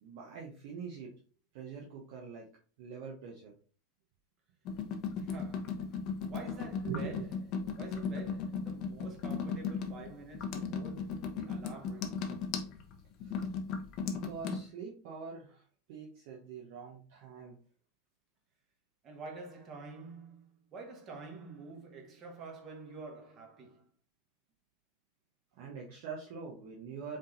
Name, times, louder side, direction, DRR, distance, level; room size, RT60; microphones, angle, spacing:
voice 1, 0.0-1.1 1.5-2.5 2.8-3.5 6.8-7.3 13.2-13.5 14.0-17.6 25.5-27.2, right 6 dB, 60° right, 0.9 m, -44 dB
sound 1, 4.7-14.6, left 5 dB, 50° left, 0.8 m, -36 dB
voice 2, 5.2-7.3 7.8-12.3 19.0-23.9, right 3 dB, 40° right, 1.6 m, -48 dB
5.4 x 3.5 x 2.6 m
figure-of-eight pair, 85°, 0 cm